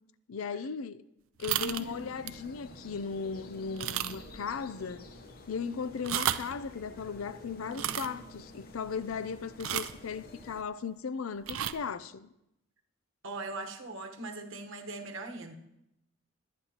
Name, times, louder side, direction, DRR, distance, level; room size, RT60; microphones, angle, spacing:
voice 1, 0.3-1.0 1.4-5.1 5.5-12.3, left 5 dB, 85° left, 0.5 m, -37 dB
sound 1, 1.4-1.9 2.3-2.5 2.9-3.0 3.8-4.4 4.6-4.7 5.9-6.5 7.7-8.1 9.6-10.0 11.4-11.7, right 11 dB, 80° right, 0.5 m, -32 dB
sound 2, 1.5-10.6, left 1 dB, 45° left, 0.9 m, -50 dB
voice 2, 1.6-2.1 13.2-15.5, right 2 dB, 65° right, 1.2 m, -40 dB
21.5 x 9.5 x 2.9 m
head